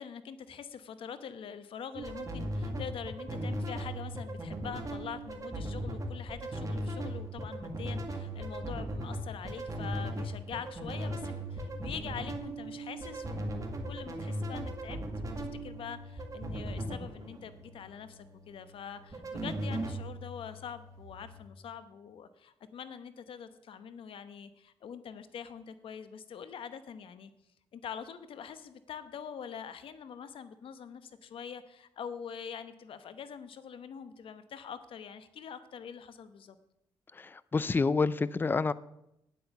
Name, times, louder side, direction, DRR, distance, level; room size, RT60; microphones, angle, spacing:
voice 1, 0.0-27.3 27.7-36.6, left 7 dB, 70° left, 12 dB, 0.9 m, -44 dB
sound 1, 1.9-21.5, right 1 dB, 35° right, 1.9 m, -38 dB
voice 2, 37.2-38.7, left 4 dB, 20° left, 18 dB, 0.4 m, -28 dB
10.0 x 8.5 x 6.9 m, 0.80 s
cardioid pair, 90°, 9 cm